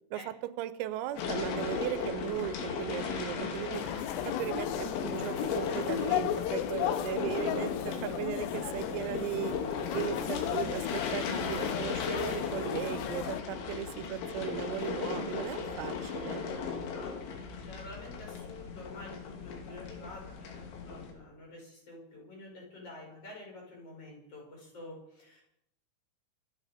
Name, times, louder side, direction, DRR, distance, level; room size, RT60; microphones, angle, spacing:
voice 1, 0.1-3.9 4.2-9.6 9.9-16.5, right 13 dB, 90° right, 14 dB, 3.6 m, -37 dB
sound 1, 1.2-21.1, left 5 dB, 65° left, 4.5 m, -36 dB
sound 2, 3.7-13.4, left 12 dB, 90° left, 2.4 m, -35 dB
voice 2, 10.2-10.5 16.6-25.4, left 2 dB, 30° left, -2 dB, 5.8 m, -49 dB
25.0 x 10.0 x 5.0 m, 0.78 s
omnidirectional pair, 5.9 m